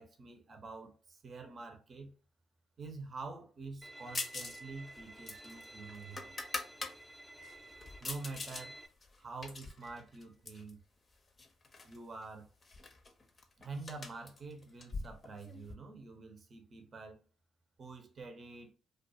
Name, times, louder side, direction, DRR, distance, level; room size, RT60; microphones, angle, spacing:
voice 1, 0.0-2.1 2.8-6.3 8.0-8.8 9.2-10.8 11.8-12.5 13.6-17.2 17.8-18.7, right 3 dB, 45° right, 0.6 m, -47 dB
Bowed string instrument, 3.8-8.9, right 1 dB, 5° right, 0.5 m, -52 dB
sound 1, 4.1-4.6 4.9-6.9 7.4-8.6 9.0-10.7 11.4-12.0 12.2-12.3 12.6-15.7, left 3 dB, 40° left, 0.6 m, -43 dB
sound 2, 5.3-5.7 6.3-6.7 7.4-7.7 8.5-8.9 9.8-10.1, right 2 dB, 85° right, 0.7 m, -59 dB
2.3 x 2.3 x 2.6 m
hypercardioid pair, 55°, 0 cm